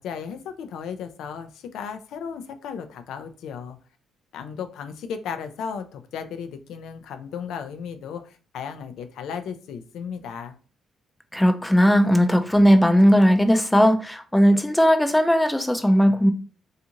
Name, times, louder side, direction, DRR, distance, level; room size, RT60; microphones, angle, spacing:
voice 1, 0.0-3.8 4.3-10.6, left 7 dB, 80° left, 0.3 m, -35 dB
voice 2, 11.3-16.3, equal, 5° left, 0.4 m, -17 dB
2.5 x 2.4 x 2.8 m
cardioid pair, 90°, 0 cm